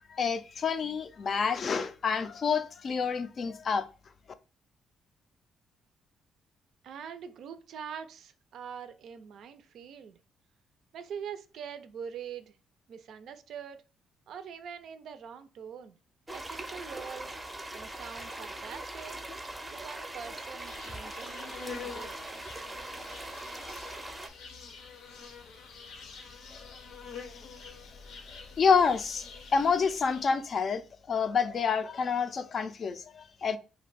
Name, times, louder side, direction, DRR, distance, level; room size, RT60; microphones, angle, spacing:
voice 1, 0.1-3.9 26.5-26.6 27.3-27.4 28.6-33.6, left 5 dB, 50° left, 0.3 m, -28 dB
voice 2, 6.8-10.2 10.9-12.6 12.9-13.8 14.3-16.0 16.3-17.3 17.7-19.2 19.7-22.1, right 7 dB, 70° right, 0.4 m, -44 dB
sound 1, 16.3-24.3, right 1 dB, 15° right, 0.5 m, -41 dB
Insect, 20.6-30.4, left 5 dB, 85° left, 0.6 m, -46 dB
2.5 x 2.2 x 3.9 m
cardioid pair, 90°, 0 cm